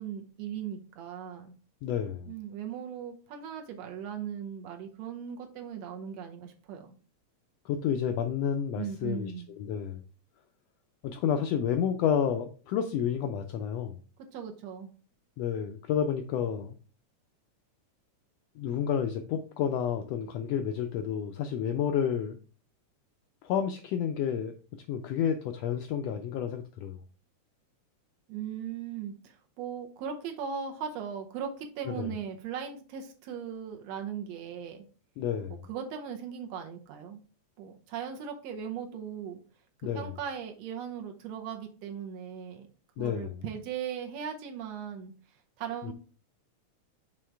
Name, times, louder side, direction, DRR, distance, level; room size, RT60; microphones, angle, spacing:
voice 1, 0.0-1.6 2.3-7.0 8.7-9.5 14.2-14.9 28.3-34.9 35.7-37.2 37.6-39.4 39.9-42.7 43.0-45.1 45.6-45.9, right 8 dB, 70° right, 3 dB, 1.8 m, -38 dB
voice 2, 1.8-2.3 7.6-9.3 9.6-10.0 11.0-14.0 15.4-16.8 18.6-22.4 23.4-24.5 24.9-27.0 31.9-32.1 35.2-35.6 39.8-40.1 43.0-43.3 45.8-45.9, left 8 dB, 80° left, 7 dB, 1.4 m, -30 dB
6.4 x 3.7 x 4.5 m, 0.39 s
omnidirectional pair, 3.4 m